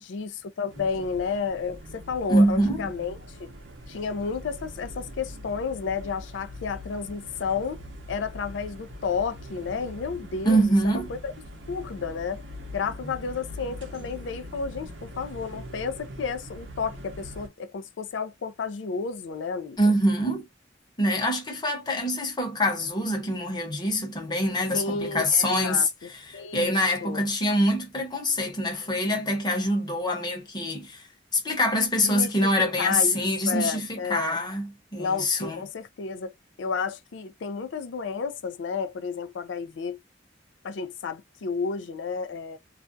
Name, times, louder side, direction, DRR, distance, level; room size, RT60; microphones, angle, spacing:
voice 1, 0.0-3.5 3.9-7.8 8.1-11.3 11.7-12.4 12.7-19.9 24.7-26.8 27.0-27.2 32.0-32.5 32.8-34.4 35.0-40.0 40.6-42.6, left 5 dB, 75° left, 0.4 m, -32 dB
sound 1, 0.7-17.5, equal, 75° right, 0.7 m, -42 dB
voice 2, 2.3-2.9 10.4-11.1 19.8-20.5 21.0-25.9 26.3-31.0 31.3-35.6, equal, 25° left, 0.8 m, -25 dB
2.4 x 2.1 x 2.5 m
head